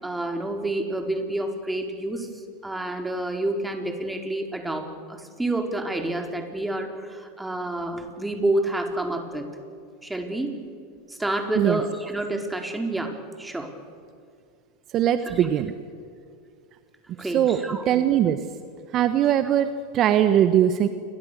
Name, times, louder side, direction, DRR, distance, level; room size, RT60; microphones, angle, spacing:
voice 1, 0.0-2.3 2.6-9.5 10.0-10.5 11.1-13.7 15.4-15.5 17.2-17.8 19.3-19.4, right 1 dB, 10° right, 4 dB, 4.3 m, -29 dB
voice 2, 14.9-15.7 17.2-17.6 17.9-18.4 18.9-20.9, right 10 dB, 45° right, 10 dB, 1.3 m, -21 dB
29.0 x 23.5 x 6.9 m, 2.3 s
hypercardioid pair, 90°, 0 cm